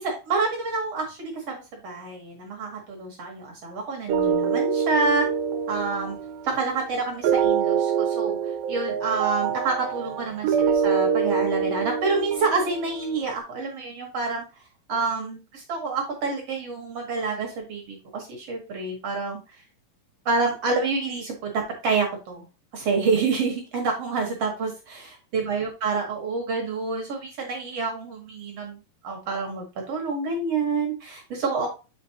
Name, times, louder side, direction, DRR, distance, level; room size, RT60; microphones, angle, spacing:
voice 1, 0.0-5.3 5.7-6.2 6.4-14.4 14.9-19.6 20.3-22.5 22.7-28.8 29.0-31.7, right 4 dB, 55° right, 1 dB, 2.1 m, -28 dB
sound 1, 4.1-13.3, right 7 dB, 85° right, 2.6 m, -25 dB
7.8 x 5.1 x 2.8 m, 0.30 s
omnidirectional pair, 4.2 m